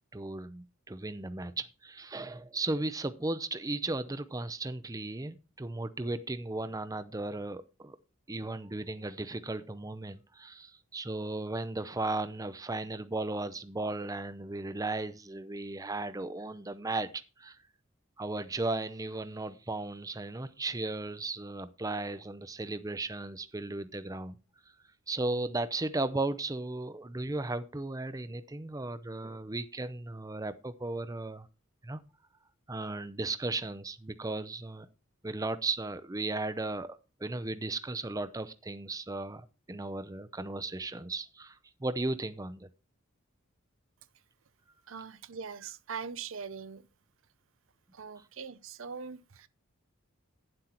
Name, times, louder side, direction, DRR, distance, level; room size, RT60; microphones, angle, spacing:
voice 1, 0.1-8.0 8.3-17.1 17.4-17.6 18.2-24.4 25.1-31.5 31.8-32.0 32.7-34.9 35.2-42.7 48.2-48.3, right 2 dB, 15° right, 0.6 m, -36 dB
voice 2, 44.9-46.8 47.9-49.5, right 5 dB, 70° right, 0.7 m, -42 dB
11.0 x 7.8 x 4.4 m
head